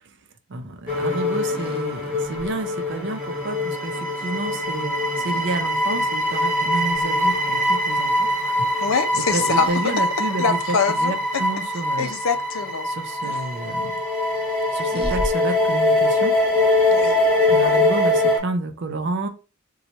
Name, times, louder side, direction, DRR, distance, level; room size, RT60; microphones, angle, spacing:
voice 1, 0.5-8.8 9.1-12.2 12.8-13.9 14.7-16.3 17.5-19.3, right 3 dB, 60° right, 0.6 m, -30 dB
sound 1, 0.9-18.4, left 1 dB, 5° right, 1.2 m, -22 dB
sound 2, 1.5-2.5 4.2-4.4 5.2-5.5 6.3-6.5 6.9-7.1 9.5-9.9 10.4-10.5 12.0-12.2 13.2-13.5 14.9-15.3, equal, 30° right, 0.7 m, -34 dB
voice 2, 8.8-9.9 10.4-11.4 12.0-12.9 16.9-17.2, left 5 dB, 80° left, 0.5 m, -24 dB
2.9 x 2.3 x 4.0 m
head